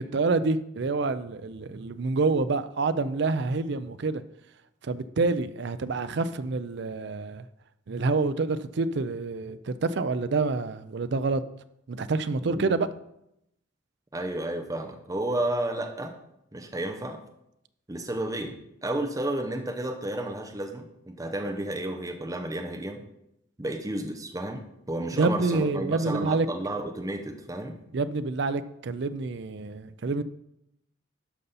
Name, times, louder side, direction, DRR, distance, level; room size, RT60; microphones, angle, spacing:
voice 1, 0.0-4.2 4.8-7.4 7.9-11.4 11.9-12.9 25.1-26.5 27.9-30.2, right 3 dB, 55° right, 0.5 m, -27 dB
voice 2, 12.4-12.8 14.1-16.1 16.5-17.2 17.9-23.0 23.6-27.8, right 1 dB, 15° right, 0.8 m, -32 dB
12.0 x 5.5 x 4.1 m
head